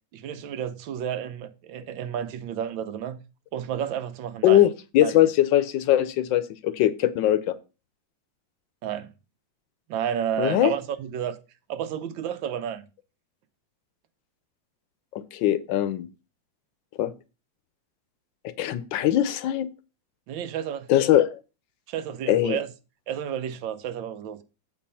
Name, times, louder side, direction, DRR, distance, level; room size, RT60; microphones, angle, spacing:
voice 1, 0.1-3.2 3.5-4.7 5.0-5.2 8.8-9.1 9.9-11.4 11.7-12.8 20.3-20.9 21.9-22.7 23.1-24.4, right 9 dB, 80° right, 1.4 m, -31 dB
voice 2, 4.4-7.6 10.4-10.7 15.1-16.1 17.0-17.1 18.4-19.7 20.9-21.4 22.3-22.6, left 12 dB, 80° left, 1.3 m, -21 dB
7.6 x 4.6 x 5.5 m
omnidirectional pair, 2.1 m